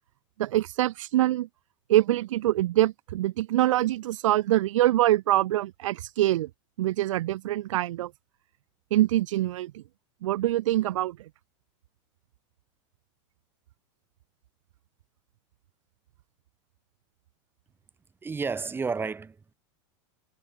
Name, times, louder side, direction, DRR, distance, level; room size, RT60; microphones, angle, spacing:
voice 1, 0.4-1.5 1.9-6.5 6.8-8.1 8.9-9.8 10.2-11.2, right 14 dB, 85° right, 1.1 m, -24 dB
voice 2, 18.2-19.5, right 5 dB, 15° right, 6.6 m, -31 dB
supercardioid pair, 145°, 16 cm